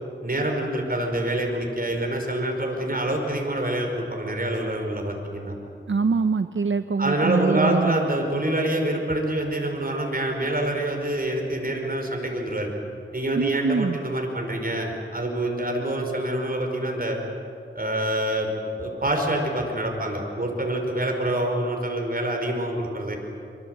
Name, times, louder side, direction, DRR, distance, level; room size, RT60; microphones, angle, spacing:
voice 1, 0.2-5.6 7.0-12.7 13.1-17.2 17.8-18.5 18.8-23.2, right 1 dB, 45° right, 2 dB, 5.2 m, -26 dB
voice 2, 5.9-7.9 13.4-14.0, right 4 dB, 65° right, 10 dB, 0.7 m, -23 dB
24.5 x 23.5 x 8.0 m, 2.6 s
wide cardioid pair, 60°, 21 cm